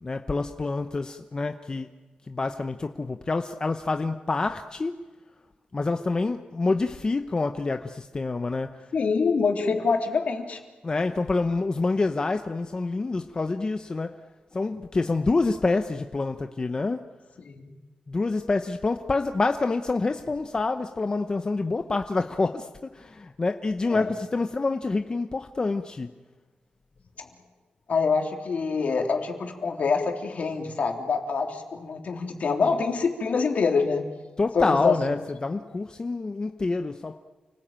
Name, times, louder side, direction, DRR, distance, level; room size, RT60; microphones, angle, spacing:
voice 1, 0.0-1.9 2.3-5.0 5.7-8.9 10.8-14.2 14.5-17.1 18.1-26.1 34.4-37.2, left 3 dB, 30° left, 0.9 m, -27 dB
voice 2, 8.9-10.6 17.4-17.7 23.9-24.0 27.2-27.3 27.9-34.0 34.5-35.0, left 5 dB, 60° left, 3.3 m, -25 dB
29.0 x 20.0 x 8.9 m
wide cardioid pair, 125°, 3 cm